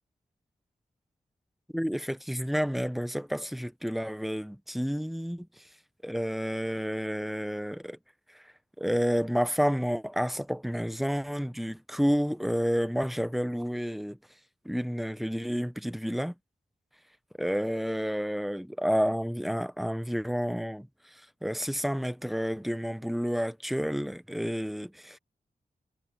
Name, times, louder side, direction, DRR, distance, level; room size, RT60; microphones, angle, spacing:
voice 1, 1.7-5.6 6.0-8.0 8.3-8.5 8.8-14.2 14.6-16.3 17.4-25.2, equal, ahead, 0.8 m, -30 dB
wide cardioid pair, 145°, 15 cm